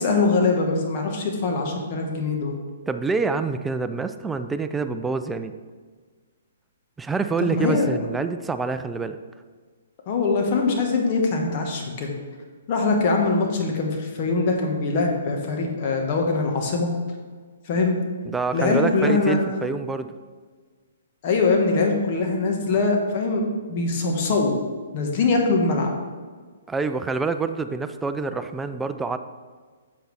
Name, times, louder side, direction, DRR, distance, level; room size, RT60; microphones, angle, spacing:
voice 1, 0.0-2.5 7.4-7.9 10.1-12.1 12.7-16.9 17.6-18.0 18.5-19.4 21.2-24.5 24.9-25.9, left 3 dB, 40° left, 1 dB, 1.5 m, -22 dB
voice 2, 2.9-5.5 7.0-9.2 18.2-20.1 26.7-29.2, right 4 dB, 10° right, 9 dB, 0.4 m, -26 dB
7.9 x 7.4 x 3.4 m, 1.5 s
hypercardioid pair, 130°, 0 cm